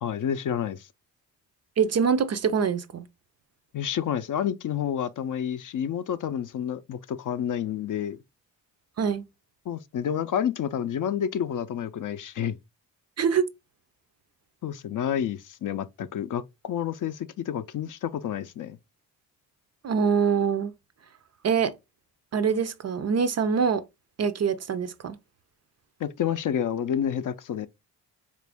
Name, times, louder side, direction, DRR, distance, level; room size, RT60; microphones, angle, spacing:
voice 1, 0.0-0.9 3.7-8.2 9.7-12.6 14.6-18.8 26.0-27.7, left 9 dB, 45° left, 0.5 m, -29 dB
voice 2, 1.8-3.1 9.0-9.2 13.2-13.5 19.8-20.7 21.4-21.7 22.3-23.8 24.2-25.2, right 6 dB, 40° right, 0.4 m, -24 dB
4.1 x 2.5 x 3.4 m
supercardioid pair, 50°, 43 cm